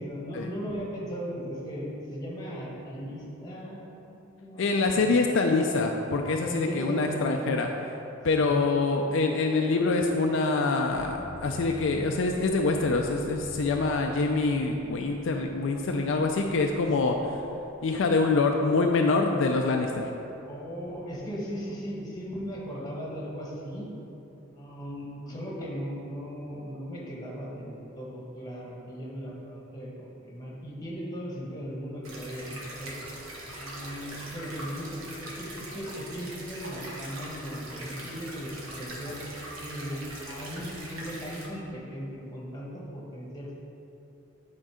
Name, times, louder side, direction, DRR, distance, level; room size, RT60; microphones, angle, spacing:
voice 1, 0.0-5.1 6.4-7.4 8.3-8.5 16.8-16.9 20.5-23.9 24.5-33.0 33.6-39.3 39.6-43.5, equal, 20° left, -4 dB, 1.3 m, -37 dB
voice 2, 4.6-8.0 8.2-17.1 17.8-20.1, left 3 dB, 65° left, 2 dB, 0.4 m, -25 dB
sound 1, 10.9-18.7 19.2-20.0, right 1 dB, 45° right, 1.7 m, -48 dB
sound 2, 32.0-41.5, right 1 dB, 80° right, 1.3 m, -41 dB
8.8 x 3.8 x 4.9 m, 2.9 s
head